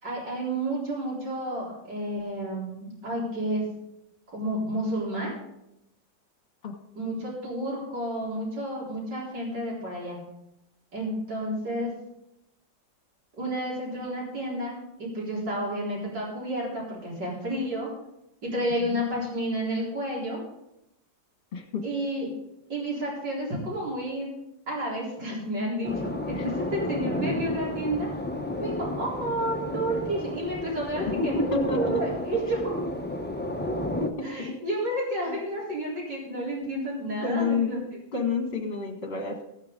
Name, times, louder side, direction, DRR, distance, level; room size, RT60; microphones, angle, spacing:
voice 1, 0.0-3.6 4.3-5.3 6.9-10.2 10.9-12.0 13.4-17.9 18.4-20.4 21.8-22.3 22.7-24.3 24.7-28.1 28.6-32.8 34.2-37.8, right 1 dB, 65° right, -5 dB, 4.6 m, -31 dB
voice 2, 21.5-21.8 26.3-26.5 31.0-32.0 32.7-32.8 34.0-34.9 35.3-35.4 37.2-37.7 38.1-39.4, left 4 dB, 35° left, 3 dB, 1.8 m, -29 dB
sound 1, 25.8-34.1, left 1 dB, 15° left, 0.4 m, -32 dB
16.0 x 9.2 x 3.8 m, 0.84 s
omnidirectional pair, 2.0 m